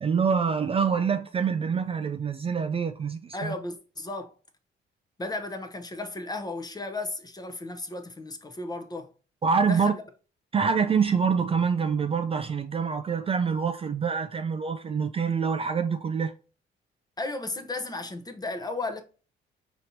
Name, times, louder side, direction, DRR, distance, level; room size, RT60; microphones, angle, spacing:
voice 1, 0.0-3.5 9.4-9.9 10.5-16.3, right 6 dB, 30° right, 0.3 m, -26 dB
voice 2, 3.3-4.3 5.2-9.1 9.7-10.0 17.2-19.0, left 2 dB, 20° left, 0.7 m, -34 dB
5.1 x 2.9 x 2.7 m
cardioid pair, 90°, 20 cm